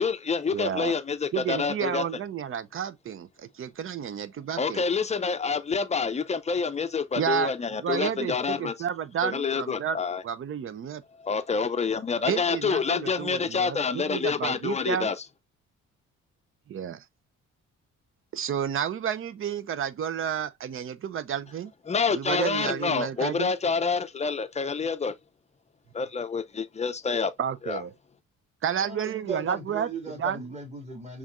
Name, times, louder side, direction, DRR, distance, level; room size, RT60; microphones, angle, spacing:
voice 1, 0.0-2.0 4.6-8.7 9.2-10.2 11.2-15.2 21.9-25.1 25.9-27.3 27.6-27.8, left 5 dB, 20° left, 0.6 m, -27 dB
voice 2, 0.5-0.9 1.3-4.8 7.2-7.5 7.8-10.0 10.2-11.0 12.3-15.1 16.7-17.0 18.3-21.7 22.1-23.5 27.4-27.9 28.6-29.9 30.2-30.5, right 9 dB, 45° right, 0.6 m, -31 dB
voice 3, 28.8-31.2, right 3 dB, 20° right, 2.4 m, -37 dB
5.5 x 3.1 x 2.5 m
cardioid pair, 90°, 30 cm